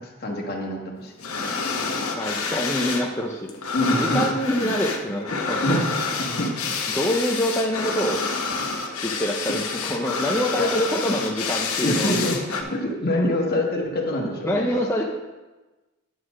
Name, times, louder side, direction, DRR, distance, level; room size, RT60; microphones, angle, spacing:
voice 1, 0.0-2.1 3.7-4.3 4.6-4.7 5.3-6.7 8.6-8.7 9.5-9.6 10.6-10.7 11.8-14.8, left 1 dB, 45° left, 1 dB, 1.3 m, -26 dB
sound 1, 1.2-3.1 3.3-12.6, left 4 dB, 85° left, 1.0 m, -28 dB
voice 2, 2.1-5.8 6.9-8.2 9.0-12.1 14.4-15.0, equal, 10° left, -2 dB, 0.5 m, -26 dB
9.5 x 4.2 x 6.2 m, 1.2 s
head